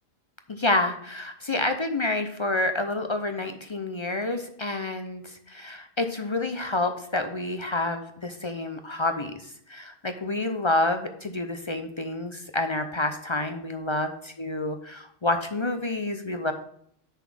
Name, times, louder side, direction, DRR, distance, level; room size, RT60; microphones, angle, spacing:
voice 1, 0.5-14.1 14.4-16.5, left 2 dB, 35° left, 7 dB, 0.5 m, -28 dB
6.8 x 4.1 x 6.2 m, 0.66 s
omnidirectional pair, 1.2 m